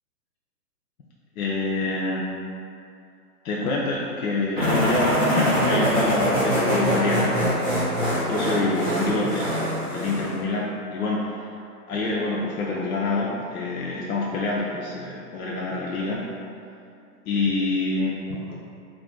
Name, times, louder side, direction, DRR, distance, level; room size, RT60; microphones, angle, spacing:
voice 1, 1.4-2.2 3.4-7.3 8.3-11.5 11.9-16.2 17.3-18.6, left 3 dB, 65° left, -4 dB, 0.5 m, -26 dB
sound 1, 4.6-10.4, equal, 10° left, 0.4 m, -24 dB
2.6 x 2.4 x 3.7 m, 2.6 s
hypercardioid pair, 160°, 47 cm